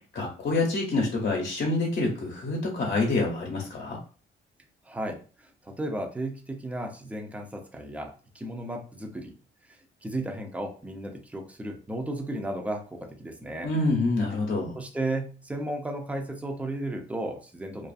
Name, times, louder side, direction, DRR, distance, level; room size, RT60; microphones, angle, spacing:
voice 1, 0.1-4.0 13.6-14.8, left 2 dB, 50° left, -1 dB, 0.8 m, -27 dB
voice 2, 4.8-9.3 9.7-13.7 14.7-17.9, right 1 dB, 5° right, 3 dB, 0.5 m, -34 dB
2.4 x 2.4 x 2.5 m, 0.38 s
cardioid pair, 90°, 20 cm